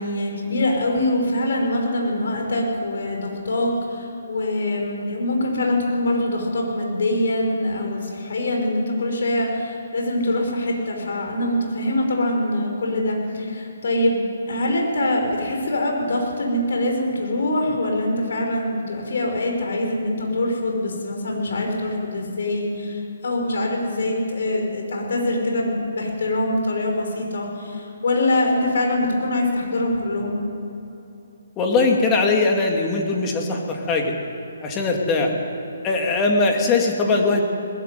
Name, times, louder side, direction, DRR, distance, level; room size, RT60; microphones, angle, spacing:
voice 1, 0.0-14.2 14.5-30.4, left 1 dB, 65° left, 1 dB, 5.7 m, -24 dB
voice 2, 31.6-34.1 34.6-35.3 35.8-37.4, left 3 dB, 15° left, 1 dB, 2.6 m, -20 dB
20.0 x 15.0 x 9.4 m, 2.9 s
hypercardioid pair, 160°, 0 cm